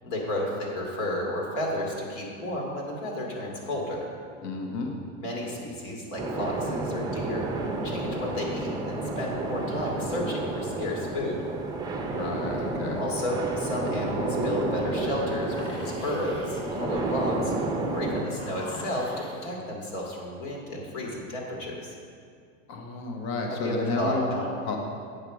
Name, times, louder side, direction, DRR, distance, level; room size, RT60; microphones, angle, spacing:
voice 1, 0.0-4.1 5.2-7.5 7.8-11.4 13.0-21.9 23.5-24.5, left 1 dB, 65° left, -2 dB, 2.2 m, -32 dB
voice 2, 4.4-4.9 12.1-13.0 22.7-24.3 24.6-24.8, left 3 dB, 45° left, 2 dB, 1.1 m, -31 dB
sound 1, 6.2-18.2, right 2 dB, 10° right, 0.6 m, -31 dB
sound 2, 15.4-19.5, left 1 dB, 15° left, 0.9 m, -44 dB
8.1 x 5.7 x 4.8 m, 2.2 s
supercardioid pair, 130°, 39 cm